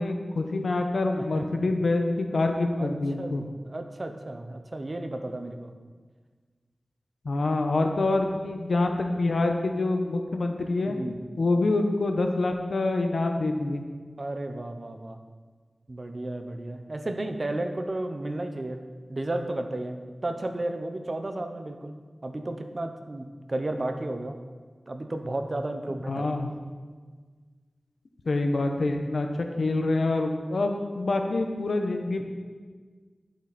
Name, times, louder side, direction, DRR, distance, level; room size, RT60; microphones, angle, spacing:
voice 1, 0.0-3.4 7.2-11.0 11.4-13.8 26.1-26.5 28.2-29.3 29.6-32.2, left 2 dB, 85° left, 4 dB, 1.0 m, -26 dB
voice 2, 1.2-1.5 2.8-2.9 3.2-5.7 10.8-11.2 14.2-15.2 15.9-18.8 19.1-24.4 24.9-26.3, right 1 dB, 45° right, 6 dB, 0.9 m, -33 dB
11.5 x 8.0 x 4.3 m, 1.5 s
wide cardioid pair, 75°, 0 cm